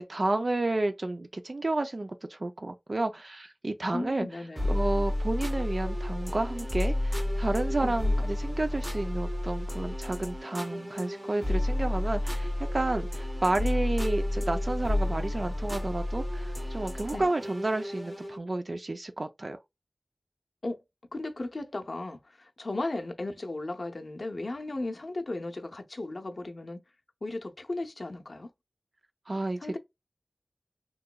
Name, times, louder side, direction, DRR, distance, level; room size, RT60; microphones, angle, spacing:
voice 1, 0.0-4.3 4.7-19.6 29.3-29.8, right 2 dB, 55° right, 0.4 m, -31 dB
voice 2, 3.9-4.7 7.8-7.9 17.1-17.3 20.6-20.8 21.1-26.8 27.2-28.5 29.6-29.8, left 2 dB, 55° left, 0.6 m, -35 dB
sound 1, 4.6-18.4, left 1 dB, 20° right, 0.8 m, -31 dB
3.6 x 2.9 x 2.2 m
wide cardioid pair, 70°, 0 cm